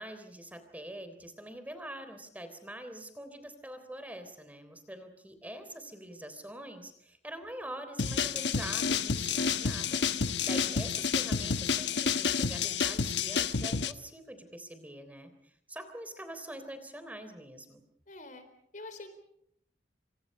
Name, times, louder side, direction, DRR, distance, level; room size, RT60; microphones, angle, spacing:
voice 1, 0.0-10.0 10.4-17.8, right 1 dB, 10° right, 9 dB, 3.5 m, -44 dB
sound 1, 8.0-13.9, left 6 dB, 70° left, 1.1 m, -30 dB
voice 2, 10.2-10.6 18.1-18.5 18.7-19.1, left 2 dB, 45° left, 10 dB, 4.2 m, -47 dB
29.0 x 26.5 x 5.5 m, 0.72 s
head